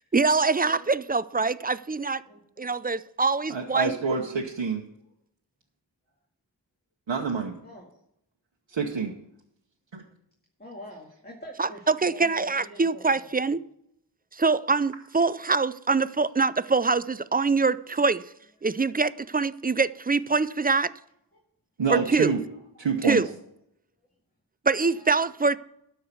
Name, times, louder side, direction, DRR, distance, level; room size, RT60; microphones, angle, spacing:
voice 1, 0.1-2.2 2.6-4.0 11.6-13.6 14.4-18.2 18.6-20.9 21.9-22.3 23.1-23.3 24.7-25.6, right 4 dB, 20° right, 0.3 m, -24 dB
voice 2, 0.6-1.0 2.2-2.8 7.6-7.9 8.7-8.8 10.6-13.6 19.7-19.8 21.3-21.4 22.8-23.3 24.9-25.1, left 1 dB, 20° left, 2.1 m, -45 dB
voice 3, 3.5-4.8 7.1-7.6 8.7-9.1 9.9-10.0 21.8-22.4 22.8-23.2, right 5 dB, 85° right, 1.0 m, -27 dB
12.5 x 4.7 x 8.1 m
wide cardioid pair, 50°, 44 cm